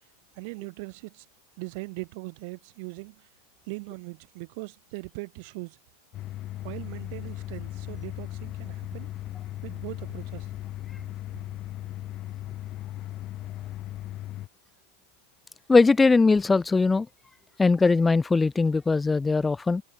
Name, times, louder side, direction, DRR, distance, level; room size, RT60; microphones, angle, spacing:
voice 1, 0.3-1.3 1.6-3.3 3.7-5.8 6.6-9.1 9.6-10.5, right 29 dB, 60° right, 6.2 m, -40 dB
sound 1, 6.1-14.5, left 14 dB, 40° left, 2.1 m, -37 dB
voice 2, 15.7-17.1 17.6-19.8, left 3 dB, 15° left, 1.3 m, -20 dB
hypercardioid pair, 105°, 0 cm